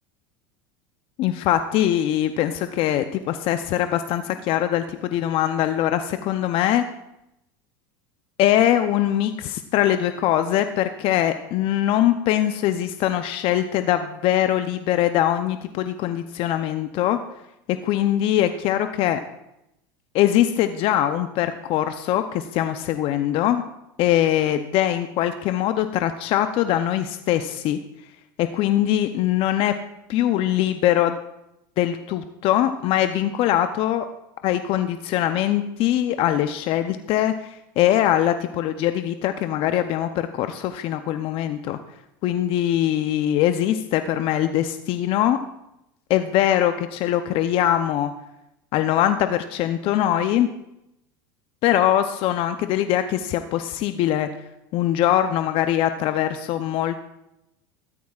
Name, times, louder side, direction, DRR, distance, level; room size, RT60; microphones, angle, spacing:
voice 1, 1.2-6.8 8.4-17.2 17.7-19.2 20.1-23.6 24.0-27.8 28.4-29.7 30.1-31.2 31.8-34.1 34.4-41.8 42.2-45.4 46.1-48.1 48.7-50.5 51.6-54.3 54.7-57.0, left 12 dB, 55° left, 9 dB, 0.6 m, -22 dB
13.5 x 13.0 x 2.4 m, 0.85 s
hypercardioid pair, 95°, 11 cm